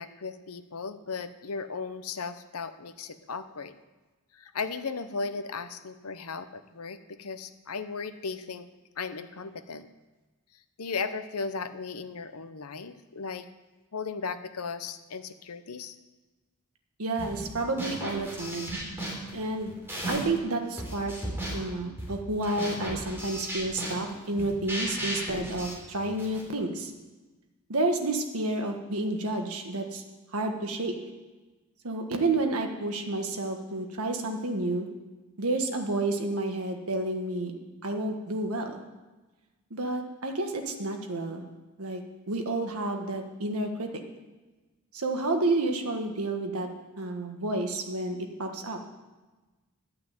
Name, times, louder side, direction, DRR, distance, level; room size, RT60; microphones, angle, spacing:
voice 1, 0.0-3.8 4.3-8.7 9.0-9.9 10.8-13.5 13.9-16.0, left 4 dB, 85° left, 11 dB, 0.8 m, -36 dB
voice 2, 17.0-18.7 19.3-19.7 20.1-21.1 21.5-26.9 27.7-30.0 30.3-31.0 31.8-34.9 35.4-37.5 37.8-38.8 39.7-41.5 41.8-44.0 44.9-46.7 47.0-48.8, right 2 dB, 80° right, 4 dB, 1.5 m, -30 dB
sound 1, 17.2-17.5 17.8-20.4 20.8-26.5, right 1 dB, 10° right, 3.3 m, -35 dB
12.0 x 5.8 x 8.9 m, 1.2 s
head